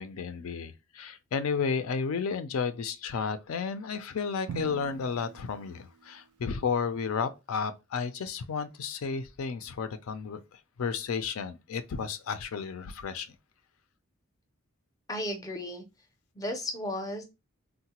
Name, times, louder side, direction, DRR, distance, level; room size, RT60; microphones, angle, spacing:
voice 1, 0.0-13.3, left 5 dB, 75° left, 0.4 m, -32 dB
Drum, 4.5-6.5, right 7 dB, 85° right, 0.3 m, -43 dB
voice 2, 15.1-15.8 16.3-17.2, left 1 dB, 15° left, 0.5 m, -34 dB
3.8 x 2.1 x 2.8 m
head